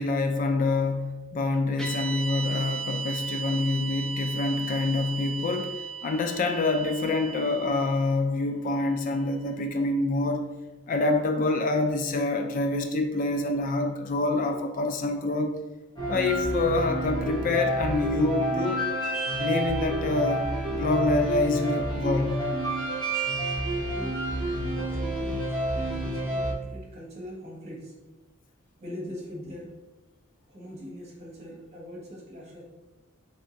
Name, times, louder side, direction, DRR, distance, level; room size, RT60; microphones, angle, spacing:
voice 1, 0.0-5.7 6.0-10.5 10.9-15.6 16.1-18.8 19.4-20.4 20.7-22.5, left 2 dB, 40° left, 5 dB, 0.3 m, -26 dB
sound 1, 1.8-10.1, right 6 dB, 5° left, 0.7 m, -37 dB
sound 2, 16.0-26.5, right 1 dB, 25° left, 1.1 m, -29 dB
voice 2, 23.9-24.2 24.7-27.9 28.8-29.7 30.5-32.6, equal, 35° right, -3 dB, 1.3 m, -42 dB
3.5 x 3.4 x 4.0 m, 1.1 s
head